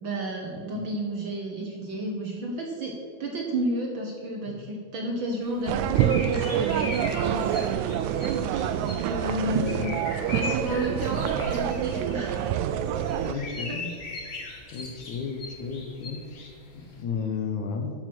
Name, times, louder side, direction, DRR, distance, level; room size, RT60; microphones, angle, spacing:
voice 1, 0.0-7.6 9.0-9.9 10.3-12.5 13.3-13.8, right 1 dB, 55° right, 0 dB, 1.4 m, -32 dB
voice 2, 0.5-0.8 4.5-4.7 9.4-9.9 13.2-13.9 14.7-17.9, left 5 dB, 85° left, 4 dB, 2.6 m, -34 dB
sound 1, 5.4-17.0, left 3 dB, 40° left, 0.9 m, -40 dB
sound 2, 5.7-13.3, right 9 dB, 85° right, 1.9 m, -26 dB
11.0 x 7.1 x 6.1 m, 2.3 s
omnidirectional pair, 3.3 m